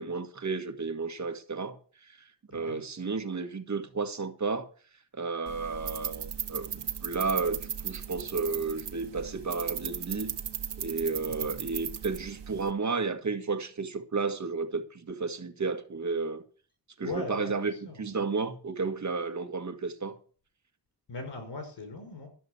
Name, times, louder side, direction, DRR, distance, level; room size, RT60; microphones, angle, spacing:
voice 1, 0.0-4.7 5.1-10.3 10.8-16.4 17.0-20.2, right 4 dB, 45° right, 1.8 m, -32 dB
voice 2, 2.5-2.8 11.3-11.5 17.0-18.1 21.1-22.3, left 3 dB, 85° left, 5.3 m, -40 dB
sound 1, 5.5-12.7, right 9 dB, 80° right, 1.3 m, -37 dB
13.0 x 7.3 x 8.4 m
wide cardioid pair, 105°, 41 cm